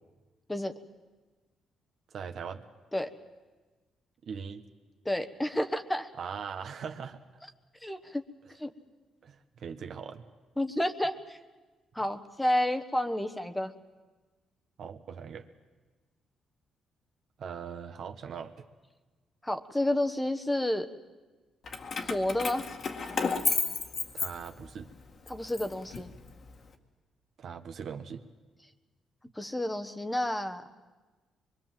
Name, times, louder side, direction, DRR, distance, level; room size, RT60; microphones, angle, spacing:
voice 1, 2.1-2.6 4.2-4.6 6.2-7.2 9.2-10.2 14.8-15.5 17.4-18.6 24.1-24.9 27.4-28.2, right 6 dB, 60° right, 7 dB, 1.4 m, -40 dB
voice 2, 5.0-6.1 7.8-8.2 8.6-8.7 10.6-11.4 11.9-13.7 19.4-20.9 22.0-22.6 25.3-26.1 29.4-30.6, left 1 dB, 10° left, 8 dB, 1.2 m, -30 dB
Keys jangling, 21.7-24.8 25.3-26.5, left 5 dB, 50° left, 1.9 m, -32 dB
24.0 x 22.5 x 7.6 m, 1.3 s
cardioid pair, 90°, 0 cm